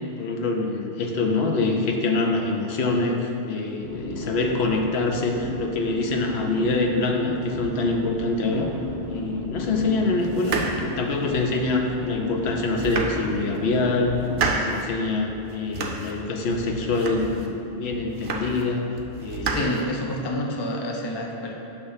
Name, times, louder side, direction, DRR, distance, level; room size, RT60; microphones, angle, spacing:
voice 1, 0.2-8.7 9.1-14.2 14.4-18.8 19.2-19.8, left 3 dB, 65° left, 1 dB, 0.9 m, -25 dB
sound 1, 3.8-14.5, left 1 dB, 20° right, 0.7 m, -34 dB
sound 2, 10.3-11.7 12.2-12.3 12.7-13.6 14.0-14.9 15.3-16.2 16.5-17.5 17.9-18.7 19.0-20.3, right 4 dB, 65° right, 0.8 m, -30 dB
voice 2, 19.5-21.5, left 1 dB, 40° left, 1 dB, 0.3 m, -28 dB
6.2 x 3.3 x 5.5 m, 2.8 s
omnidirectional pair, 1.2 m